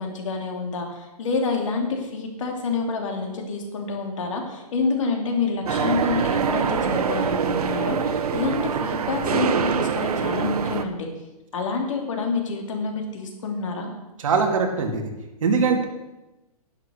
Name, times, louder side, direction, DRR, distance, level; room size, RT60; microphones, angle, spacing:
voice 1, 0.0-11.1 11.5-13.9, left 4 dB, 55° left, 3 dB, 3.0 m, -28 dB
sound 1, 5.7-10.8, right 6 dB, 75° right, 1.3 m, -24 dB
voice 2, 14.2-15.1 15.4-15.8, right 5 dB, 55° right, 3 dB, 2.5 m, -21 dB
11.5 x 10.5 x 6.5 m, 1.0 s
hypercardioid pair, 170°, 20 cm